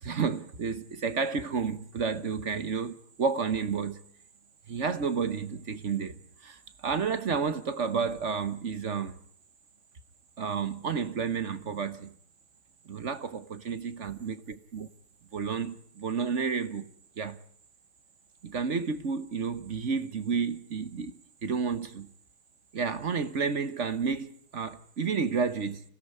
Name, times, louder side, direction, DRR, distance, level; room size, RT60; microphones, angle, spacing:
voice 1, 0.0-4.0 4.7-9.1 10.4-12.1 12.8-14.9 15.3-16.9 17.2-17.4 18.4-22.1 22.7-25.8, right 5 dB, 50° right, 1.4 m, -31 dB
25.0 x 17.0 x 9.5 m
omnidirectional pair, 1.8 m